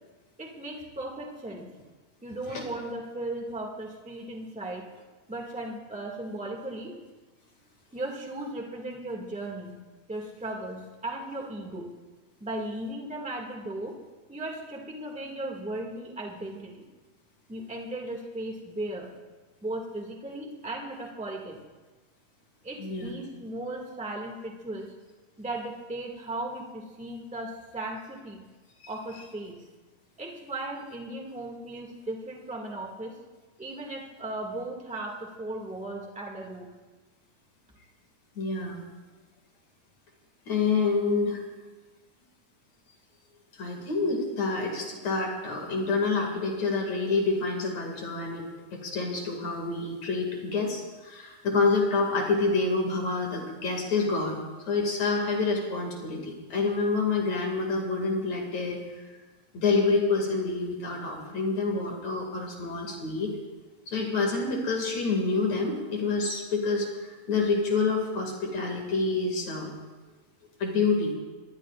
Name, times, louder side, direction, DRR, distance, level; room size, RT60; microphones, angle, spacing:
voice 1, 0.4-1.7 2.2-4.8 5.3-6.9 7.9-9.7 10.1-11.9 12.4-14.0 14.3-16.8 17.5-19.1 19.6-21.6 22.6-24.9 25.4-28.4 28.9-29.6 30.2-33.2 33.6-36.7, right 1 dB, 5° right, 0 dB, 1.0 m, -36 dB
voice 2, 22.8-23.1 38.4-38.8 40.5-41.4 43.6-48.5 48.7-54.4 54.6-58.8 59.5-63.3 63.9-69.7 70.6-71.1, left 3 dB, 55° left, 0 dB, 3.3 m, -27 dB
25.5 x 20.5 x 2.5 m, 1.2 s
omnidirectional pair, 3.8 m